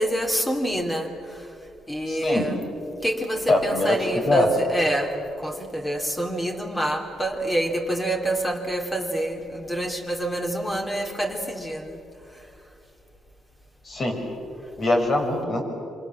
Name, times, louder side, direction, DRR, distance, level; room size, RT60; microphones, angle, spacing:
voice 1, 0.0-1.5 1.9-2.7 3.0-12.0, right 1 dB, 15° left, 3 dB, 3.5 m, -27 dB
voice 2, 2.1-2.5 3.5-4.0 4.2-4.5 13.8-14.2 14.8-15.6, left 2 dB, 40° left, 3 dB, 6.3 m, -22 dB
27.0 x 26.0 x 7.5 m, 2.7 s
cardioid pair, 90°, 0 cm